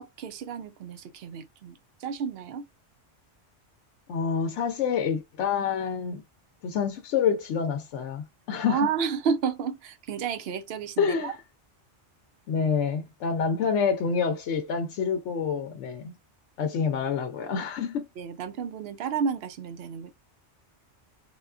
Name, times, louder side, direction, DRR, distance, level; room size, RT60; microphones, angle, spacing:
voice 1, 0.0-2.7 8.7-11.4 18.2-20.1, right 6 dB, 65° right, 0.7 m, -31 dB
voice 2, 4.1-6.2 6.6-8.8 11.0-11.3 12.5-16.1 16.6-18.1, left 6 dB, 80° left, 0.9 m, -27 dB
3.6 x 2.3 x 2.3 m
omnidirectional pair, 1.2 m